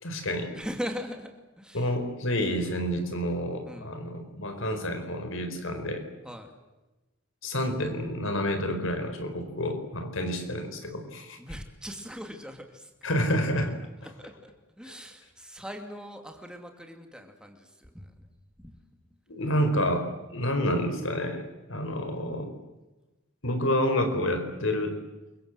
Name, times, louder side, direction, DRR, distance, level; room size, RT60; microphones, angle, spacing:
voice 1, 0.0-0.5 1.7-6.0 7.4-11.4 13.0-13.7 19.3-22.5 23.4-25.0, equal, 75° left, 7 dB, 4.7 m, -29 dB
voice 2, 0.5-1.9 3.6-3.9 6.2-6.6 11.4-13.1 14.0-18.2 18.6-18.8, equal, 5° right, 4 dB, 2.6 m, -40 dB
28.0 x 24.0 x 8.0 m, 1.1 s
head